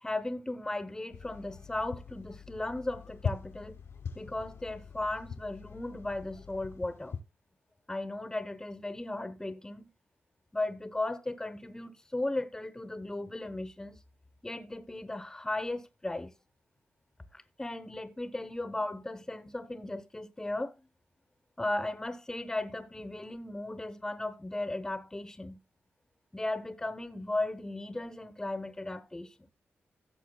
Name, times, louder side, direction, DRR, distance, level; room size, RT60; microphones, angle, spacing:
voice 1, 0.0-3.8 4.1-7.2 7.9-9.9 10.5-14.0 14.4-16.3 17.3-20.7 21.6-25.6 26.3-29.3, left 2 dB, 15° left, 0.9 m, -36 dB
sound 1, 1.1-7.2, left 6 dB, 80° left, 1.0 m, -42 dB
16.0 x 6.8 x 2.3 m
cardioid pair, 100°, 4 cm